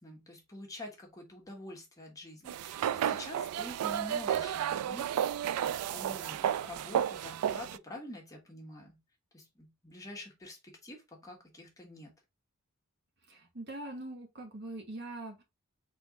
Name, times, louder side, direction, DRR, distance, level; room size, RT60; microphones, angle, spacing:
voice 1, 0.0-5.2 5.6-9.0 9.3-12.1, left 1 dB, 15° left, 1.4 m, -47 dB
sound 1, 2.5-7.8, right 10 dB, 90° right, 0.3 m, -32 dB
voice 2, 13.3-15.4, right 2 dB, 50° right, 1.3 m, -42 dB
3.9 x 3.5 x 3.6 m
head